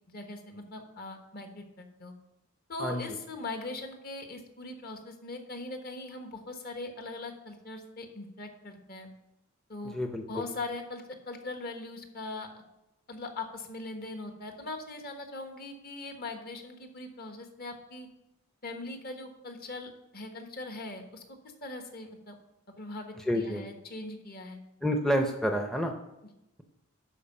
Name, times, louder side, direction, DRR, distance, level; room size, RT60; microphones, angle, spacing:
voice 1, 0.1-2.1 2.7-9.1 9.7-10.0 10.3-12.6 13.1-18.1 18.6-21.2 21.6-22.3 22.7-24.6, left 2 dB, 45° left, 5 dB, 1.2 m, -40 dB
voice 2, 9.8-10.5 23.3-23.6 24.8-25.9, equal, 5° left, 3 dB, 0.6 m, -29 dB
11.5 x 4.6 x 5.4 m, 0.89 s
head